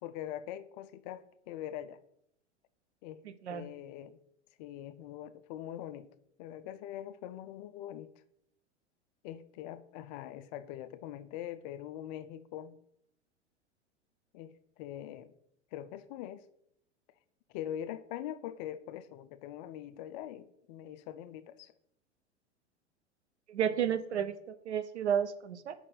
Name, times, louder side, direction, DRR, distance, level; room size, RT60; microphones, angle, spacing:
voice 1, 0.0-2.0 3.0-3.2 3.5-4.2 4.6-6.1 6.4-8.1 9.2-12.8 14.3-15.3 15.7-16.5 17.5-21.7 23.7-24.3, left 11 dB, 40° left, 0.4 m, -43 dB
voice 2, 3.3-3.7 23.5-24.3 24.7-25.7, right 8 dB, 80° right, 0.6 m, -32 dB
5.1 x 4.1 x 5.1 m
figure-of-eight pair, 90°, 34 cm